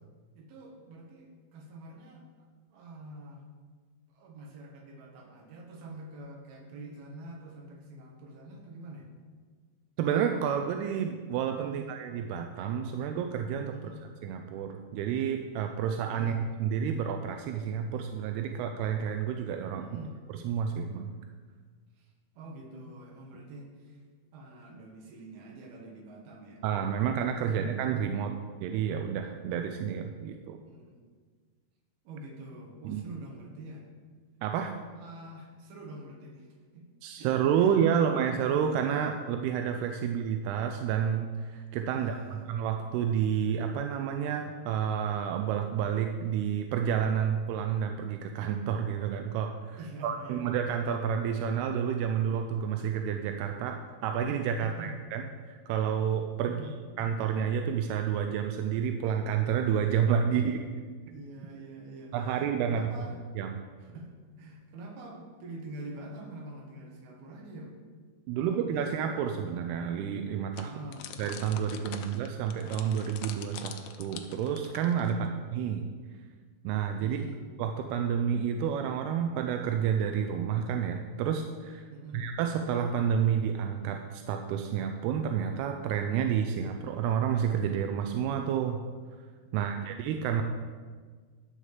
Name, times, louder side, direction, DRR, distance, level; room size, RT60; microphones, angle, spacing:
voice 1, 0.4-3.5 4.1-9.1 11.6-11.9 13.7-14.0 16.2-16.5 19.8-20.1 22.0-24.0 24.3-26.6 27.3-27.7 30.7-31.0 32.0-33.9 35.0-36.8 37.2-38.1 41.9-42.5 49.7-50.5 54.6-55.0 56.4-56.8 60.3-60.6 61.1-63.2 63.8-64.1 64.4-67.7 68.4-68.6 70.6-71.1 71.8-72.1 75.1-75.4 77.0-77.4 81.9-82.3 89.4-90.0, right 2 dB, 75° right, 0 dB, 3.4 m, -46 dB
voice 2, 10.0-13.7 14.2-19.9 20.4-21.1 26.6-28.3 28.6-30.6 32.9-33.1 34.4-34.7 37.0-56.6 57.0-60.6 62.1-62.9 63.4-63.6 68.3-70.7 71.2-75.2 75.5-75.9 76.6-77.2 77.6-81.9 82.1-88.8 89.5-90.4, right 8 dB, 90° right, 5 dB, 2.6 m, -30 dB
sound 1, 70.5-75.3, left 9 dB, 90° left, 2.8 m, -45 dB
12.0 x 4.9 x 7.4 m, 1.5 s
omnidirectional pair, 4.5 m